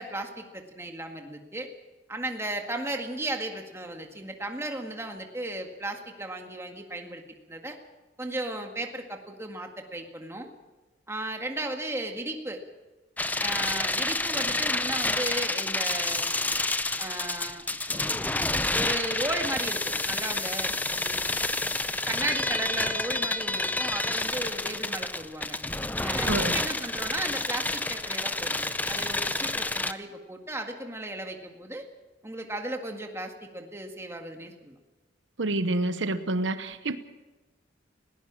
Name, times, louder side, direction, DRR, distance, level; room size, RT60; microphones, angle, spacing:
voice 1, 0.0-1.7 2.1-7.2 7.5-7.8 8.2-10.5 11.1-12.6 13.4-16.3 17.0-17.6 18.7-21.3 22.1-25.6 26.0-31.9 32.2-34.8, right 1 dB, 15° right, 4 dB, 1.9 m, -35 dB
sound 1, 13.2-29.9, left 2 dB, 10° left, 0.5 m, -29 dB
voice 2, 26.2-26.6 35.4-37.0, right 2 dB, 80° right, 11 dB, 1.0 m, -28 dB
20.5 x 17.5 x 7.5 m, 1.2 s
head